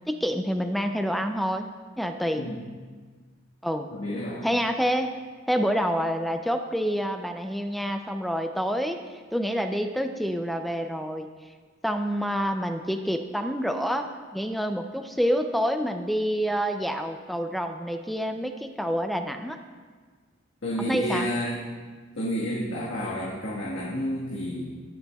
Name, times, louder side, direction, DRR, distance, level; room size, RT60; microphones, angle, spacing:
voice 1, 0.1-1.7 2.0-2.5 3.6-3.9 4.4-5.1 5.5-9.0 9.3-11.3 11.8-14.1 14.3-19.6 20.8-21.3, equal, ahead, 6 dB, 0.3 m, -27 dB
voice 2, 3.9-4.5 20.6-21.6 22.1-24.7, equal, 75° left, -6 dB, 1.4 m, -30 dB
19.0 x 6.8 x 2.3 m, 1.5 s
head